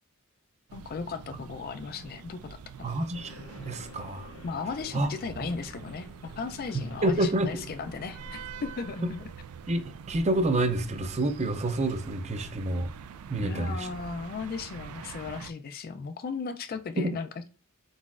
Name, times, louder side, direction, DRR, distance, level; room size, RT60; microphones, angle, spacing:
voice 1, 0.7-2.9 4.4-6.1 6.3-9.2 13.4-17.5, left 4 dB, 45° left, 0.4 m, -36 dB
sound 1, 0.7-15.5, right 6 dB, 90° right, 0.3 m, -45 dB
voice 2, 2.8-3.3 3.6-4.3 4.9-5.1 7.0-7.6 9.7-12.9 13.3-13.9 17.0-17.1, right 1 dB, 30° right, 0.5 m, -28 dB
sound 2, 3.1-9.1, left 2 dB, 80° left, 0.8 m, -50 dB
4.1 x 4.0 x 2.4 m
head